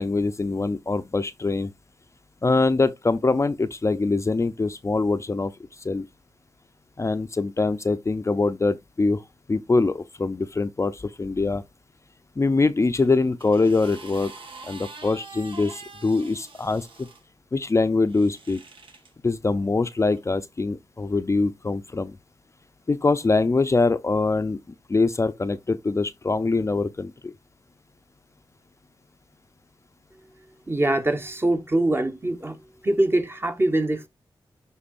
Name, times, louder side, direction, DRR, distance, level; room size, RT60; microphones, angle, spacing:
voice 1, 0.0-1.7 2.4-6.1 7.0-9.2 9.5-11.6 12.4-14.3 14.7-17.1 17.5-18.6 19.2-22.2 22.9-24.6 24.9-27.3, left 3 dB, 30° left, 0.6 m, -23 dB
sound 1, 12.9-17.2 18.1-19.1 20.0-20.2, right 3 dB, 70° right, 1.7 m, -45 dB
voice 2, 30.7-32.6 32.8-34.1, right 1 dB, 25° right, 1.2 m, -23 dB
11.5 x 3.9 x 2.6 m
cardioid pair, 70°, 9 cm